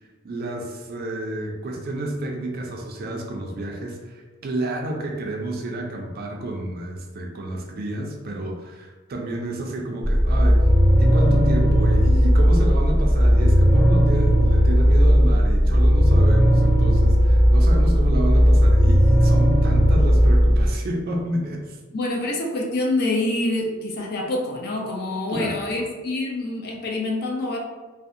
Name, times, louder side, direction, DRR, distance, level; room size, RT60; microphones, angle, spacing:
voice 1, 0.2-10.7 11.0-21.8 25.3-25.8, right 1 dB, 50° right, 1 dB, 0.4 m, -30 dB
sound 1, 10.0-20.7, equal, 5° left, 0.6 m, -16 dB
voice 2, 21.9-27.6, left 2 dB, 50° left, 0 dB, 0.4 m, -26 dB
2.6 x 2.0 x 2.4 m, 1.3 s
head